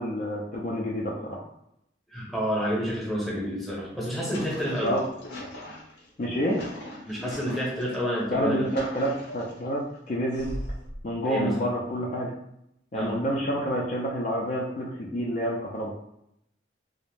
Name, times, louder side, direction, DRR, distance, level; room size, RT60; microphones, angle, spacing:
voice 1, 0.0-1.4 4.8-5.0 6.2-6.6 8.3-10.6 11.0-12.3 12.9-15.9, equal, 40° left, -3 dB, 0.3 m, -28 dB
voice 2, 2.1-4.9 7.0-8.8 11.2-11.5 12.9-13.1, equal, ahead, -6 dB, 0.8 m, -29 dB
sound 1, 4.0-8.0 8.4-9.7 10.3-11.0, left 1 dB, 75° left, 0.7 m, -40 dB
2.5 x 2.0 x 3.2 m, 0.79 s
head